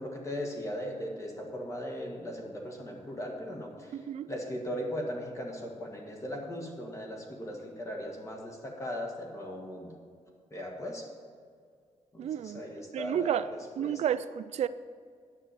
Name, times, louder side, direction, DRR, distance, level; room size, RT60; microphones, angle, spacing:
voice 1, 0.0-4.0 4.3-10.0 10.5-11.1 12.1-13.4 13.8-14.0, equal, 25° left, 1.6 m, -38 dB
voice 2, 3.9-4.3 12.2-12.6 12.9-13.4 13.8-14.7, right 9 dB, 65° right, 0.4 m, -31 dB
10.5 x 5.9 x 7.0 m
wide cardioid pair, 165°, 12 cm